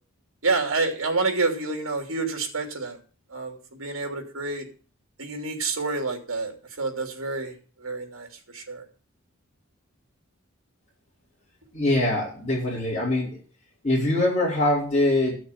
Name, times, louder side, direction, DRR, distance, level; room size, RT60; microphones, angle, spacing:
voice 1, 0.4-3.0 3.3-4.7 5.2-8.8, right 3 dB, 70° right, 4 dB, 3.2 m, -28 dB
voice 2, 11.7-13.4 13.8-15.3, left 1 dB, 35° left, -7 dB, 4.9 m, -23 dB
14.0 x 6.4 x 7.3 m, 0.39 s
head